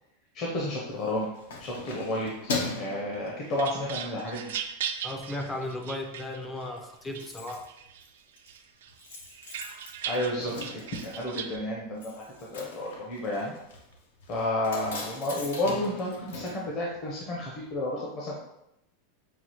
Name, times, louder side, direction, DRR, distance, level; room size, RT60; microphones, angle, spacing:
voice 1, 0.3-1.3 1.6-4.5 10.1-13.6 14.3-18.4, left 1 dB, 35° left, -3 dB, 0.7 m, -31 dB
Keys jangling, 0.9-4.0 4.4-4.7 5.0-5.7 6.0-6.1 6.3-6.4 6.6-17.4 17.7-17.8, left 3 dB, 90° left, 0.8 m, -40 dB
sound 1, 3.1-6.7 7.1-8.0 8.5-11.6, right 9 dB, 90° right, 0.4 m, -38 dB
voice 2, 5.0-7.7, left 1 dB, 15° left, 4 dB, 0.4 m, -35 dB
5.9 x 2.5 x 2.9 m, 0.80 s
supercardioid pair, 155°, 0 cm